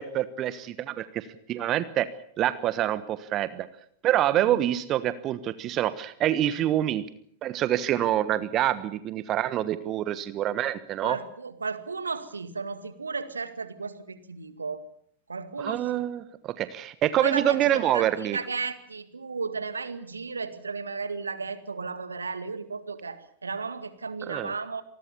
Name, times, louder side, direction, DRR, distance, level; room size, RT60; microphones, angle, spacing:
voice 1, 0.0-2.1 2.4-3.7 4.0-7.0 7.4-11.2 15.6-18.4 24.3-24.5, right 12 dB, 35° right, 15 dB, 1.2 m, -26 dB
voice 2, 11.0-14.8 15.3-16.0 17.2-24.8, right 4 dB, 75° right, 12 dB, 2.1 m, -34 dB
27.0 x 20.5 x 7.1 m, 0.63 s
figure-of-eight pair, 90°, 0 cm